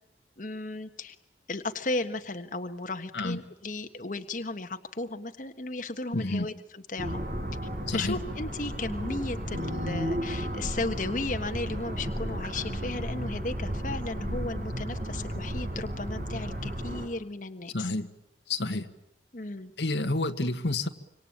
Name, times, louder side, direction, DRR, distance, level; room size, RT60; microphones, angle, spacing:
voice 1, 0.4-1.1 1.5-7.2 7.9-17.9 19.3-19.7, left 2 dB, 45° left, 1.4 m, -35 dB
voice 2, 6.1-6.5 7.9-8.2 17.7-18.1 18.5-18.9 19.8-20.9, left 2 dB, 85° left, 1.7 m, -29 dB
sound 1, 7.0-17.1, equal, 55° right, 5.2 m, -33 dB
26.0 x 25.0 x 8.8 m
head